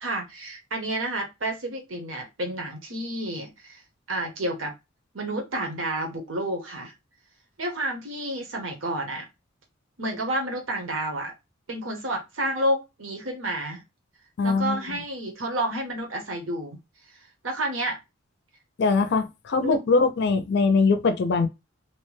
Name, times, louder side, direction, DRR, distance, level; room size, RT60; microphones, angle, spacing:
voice 1, 0.0-3.8 4.1-4.7 5.1-6.9 7.6-9.2 10.0-11.3 11.7-13.8 14.4-16.8 17.4-18.0 19.6-19.7, right 1 dB, 80° right, 0.9 m, -30 dB
voice 2, 14.4-15.0 18.8-21.5, left 4 dB, 60° left, 0.4 m, -22 dB
2.8 x 2.1 x 3.1 m
head